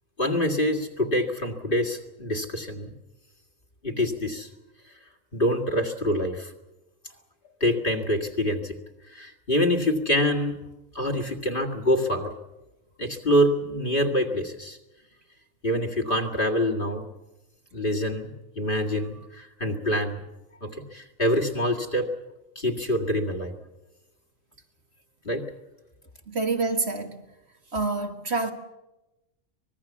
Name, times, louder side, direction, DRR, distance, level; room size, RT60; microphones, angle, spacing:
voice 1, 0.2-2.9 3.8-4.5 5.3-6.5 7.6-8.8 9.1-10.6 10.9-12.3 13.0-14.8 15.6-17.1 17.7-20.2 20.6-22.1 22.6-23.6 25.2-25.5, equal, 40° left, 2.2 m, -26 dB
voice 2, 26.3-27.2 27.7-28.5, right 3 dB, 50° right, 1.9 m, -27 dB
25.0 x 20.0 x 7.2 m
omnidirectional pair, 1.4 m